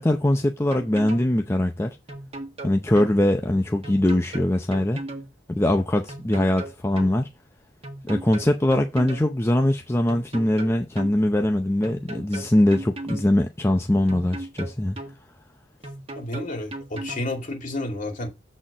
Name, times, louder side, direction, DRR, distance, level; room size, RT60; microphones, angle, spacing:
voice 1, 0.0-2.0 2.6-5.0 5.5-7.3 8.0-15.0, left 1 dB, 15° left, 0.6 m, -22 dB
sound 1, 0.7-1.3 2.1-3.2 3.8-5.3 6.1-7.2 7.8-9.3 10.1-11.1 11.8-13.3 14.1-15.2 15.8-17.3, right 2 dB, 35° right, 1.7 m, -36 dB
voice 2, 16.2-18.3, left 1 dB, 45° left, 2.7 m, -31 dB
7.6 x 4.2 x 5.1 m
head